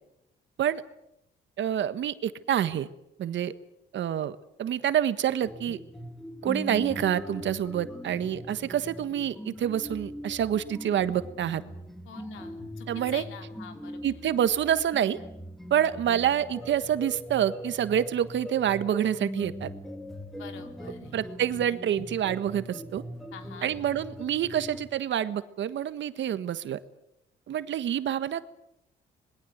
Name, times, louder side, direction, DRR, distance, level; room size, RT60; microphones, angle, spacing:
voice 1, 1.6-2.9 3.2-3.5 3.9-5.8 6.4-11.6 12.9-13.2 14.0-15.2 15.7-19.7 21.1-23.0 23.6-26.8 27.5-28.5, right 10 dB, 70° right, 13 dB, 1.5 m, -27 dB
sound 1, 5.4-24.9, equal, ahead, 2.4 m, -41 dB
voice 2, 12.1-14.4 20.4-21.3 23.3-23.7, left 7 dB, 80° left, 6 dB, 3.6 m, -46 dB
26.5 x 21.0 x 8.1 m, 0.85 s
cardioid pair, 90°, 20 cm